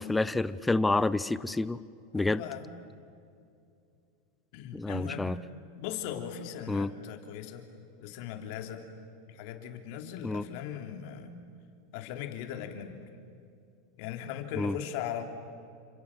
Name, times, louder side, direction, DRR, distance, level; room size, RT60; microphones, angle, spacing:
voice 1, 0.0-1.8 2.1-2.4 4.7-5.3 6.7-6.9 10.2-10.4 14.6-14.8, left 2 dB, 10° left, 16 dB, 0.8 m, -28 dB
voice 2, 2.1-2.6 4.5-5.3 5.8-7.7 8.0-8.8 9.3-11.3 11.9-13.1 14.0-15.2, left 9 dB, 60° left, 6 dB, 3.4 m, -39 dB
29.5 x 27.0 x 7.5 m, 2.5 s
supercardioid pair, 120°, 0 cm